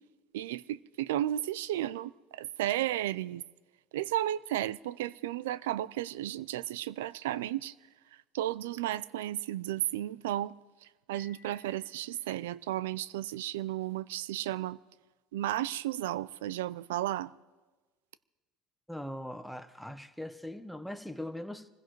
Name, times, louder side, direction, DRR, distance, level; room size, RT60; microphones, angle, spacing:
voice 1, 0.3-3.4 3.9-7.7 8.3-10.5 11.1-14.8 15.3-17.3, right 13 dB, 90° right, 0.4 m, -33 dB
Piano, 11.2-13.1, left 5 dB, 20° left, 3.3 m, -62 dB
voice 2, 18.9-21.7, left 1 dB, ahead, 1.0 m, -40 dB
25.0 x 16.0 x 3.1 m
supercardioid pair, 100°, 0 cm